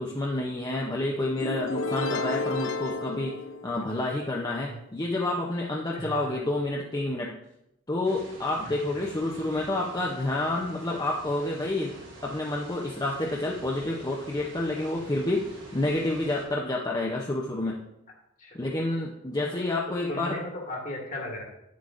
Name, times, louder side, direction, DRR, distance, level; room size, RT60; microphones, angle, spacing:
voice 1, 0.0-3.4 3.6-7.3 7.9-12.0 12.2-17.8 18.5-20.4, left 2 dB, 20° left, -2 dB, 0.6 m, -29 dB
sound 1, 1.4-4.2, left 3 dB, 85° left, 0.6 m, -31 dB
voice 2, 5.9-6.3 8.6-9.0 18.4-18.6 19.3-19.7 20.1-21.4, left 1 dB, 45° left, 0 dB, 1.6 m, -37 dB
sound 2, 8.0-16.4, right 1 dB, 75° right, 2.8 m, -47 dB
8.5 x 7.6 x 2.5 m, 0.83 s
head